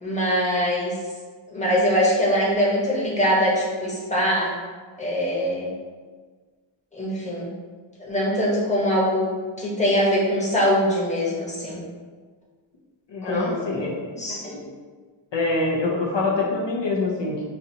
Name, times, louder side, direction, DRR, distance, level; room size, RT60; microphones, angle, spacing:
voice 1, 0.0-1.0 1.5-4.5 5.0-5.7 6.9-7.5 8.0-11.8 13.2-14.7, equal, 15° left, -5 dB, 1.0 m, -23 dB
voice 2, 13.1-14.1 15.3-17.4, left 3 dB, 65° left, -4 dB, 0.8 m, -25 dB
5.4 x 2.6 x 2.7 m, 1.5 s
wide cardioid pair, 110°, 47 cm